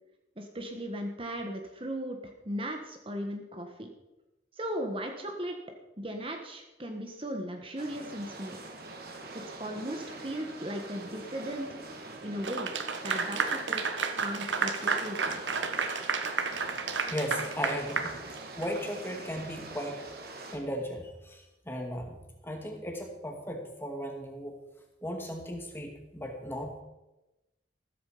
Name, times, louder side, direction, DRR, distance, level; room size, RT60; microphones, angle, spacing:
voice 1, 0.4-2.2 2.4-3.9 4.6-5.6 6.0-8.6 9.3-11.8 12.2-12.7 13.0-13.8 14.2-15.4, equal, 30° right, 4 dB, 1.5 m, -37 dB
sound 1, 7.8-20.6, right 2 dB, 55° right, 2.7 m, -44 dB
Bowed string instrument, 9.7-13.8, right 2 dB, 10° right, 2.8 m, -52 dB
Clapping / Applause, 12.4-18.8, right 5 dB, 80° right, 1.4 m, -31 dB
voice 2, 17.1-18.2 18.6-20.0 20.5-22.2 22.4-24.6 25.0-26.8, equal, 10° left, 2 dB, 2.3 m, -36 dB
15.0 x 13.5 x 5.1 m, 1.0 s
head